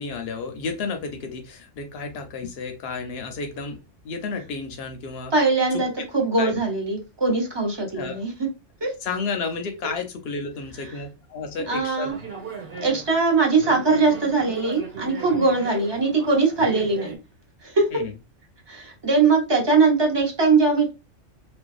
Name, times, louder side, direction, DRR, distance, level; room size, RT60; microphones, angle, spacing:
voice 1, 0.0-3.8 4.0-5.3 5.7-5.8 6.4-6.6 7.9-8.2 9.0-12.1 17.9-18.1, left 4 dB, 65° left, 0.7 m, -31 dB
voice 2, 5.3-8.5 8.8-8.9 11.7-12.2 12.8-17.2 17.6-17.9 18.7-20.9, right 4 dB, 30° right, 0.5 m, -21 dB
sound 1, 12.1-17.2, right 5 dB, 55° right, 1.1 m, -38 dB
2.5 x 2.2 x 2.3 m
omnidirectional pair, 1.3 m